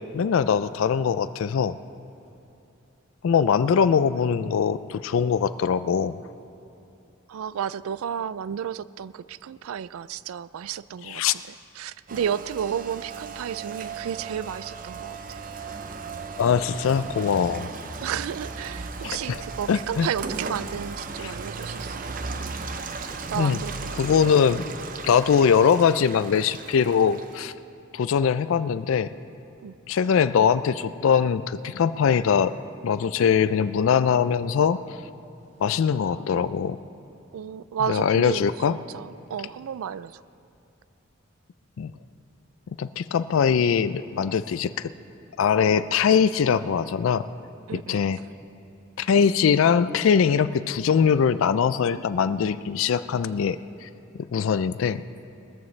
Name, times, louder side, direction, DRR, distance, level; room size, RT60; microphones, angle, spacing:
voice 1, 0.1-1.7 3.2-6.2 11.1-11.3 16.4-17.7 19.3-19.4 19.7-20.1 23.4-23.6 24.0-24.6 25.0-27.5 27.9-29.1 29.9-32.5 32.8-34.8 35.6-36.8 37.9-38.8 41.8-41.9 42.8-44.9 45.4-47.2 47.7-48.2 49.0-53.9 54.3-55.0, left 7 dB, 75° left, 14 dB, 0.3 m, -22 dB
voice 2, 7.3-15.4 18.0-22.0 23.3-24.0 29.6-29.8 37.3-40.2 47.7-48.2, right 8 dB, 90° right, 18 dB, 0.3 m, -32 dB
Rain, 12.1-27.5, right 4 dB, 40° right, 0.6 m, -36 dB
21.0 x 14.0 x 3.2 m, 2.7 s
head